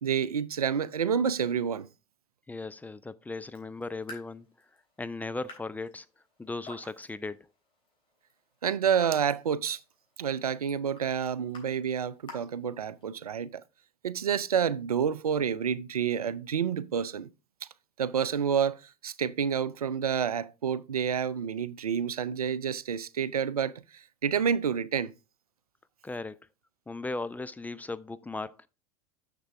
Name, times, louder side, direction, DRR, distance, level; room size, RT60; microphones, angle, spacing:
voice 1, 0.0-1.9 8.6-9.8 10.2-13.6 14.0-17.3 17.6-17.7 18.0-25.1, right 7 dB, 85° right, 0.4 m, -29 dB
voice 2, 2.5-4.5 5.0-6.1 6.4-7.5 26.0-26.4 26.9-28.7, left 3 dB, 10° left, 0.4 m, -37 dB
Raindrop / Drip, 3.4-13.3, left 2 dB, 30° left, 3.6 m, -52 dB
6.7 x 6.6 x 3.5 m
figure-of-eight pair, 80°, 18 cm